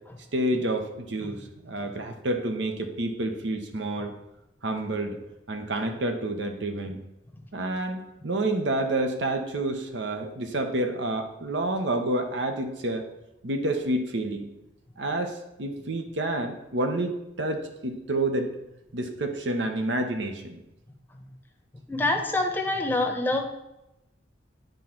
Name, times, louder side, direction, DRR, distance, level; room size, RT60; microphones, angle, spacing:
voice 1, 0.3-4.1 4.6-5.2 5.5-7.0 7.5-13.0 13.4-14.5 15.0-18.5 18.9-20.6, right 1 dB, 70° right, 6 dB, 1.0 m, -29 dB
voice 2, 21.9-23.5, left 2 dB, 10° left, 4 dB, 0.8 m, -26 dB
9.2 x 3.8 x 6.0 m, 0.91 s
head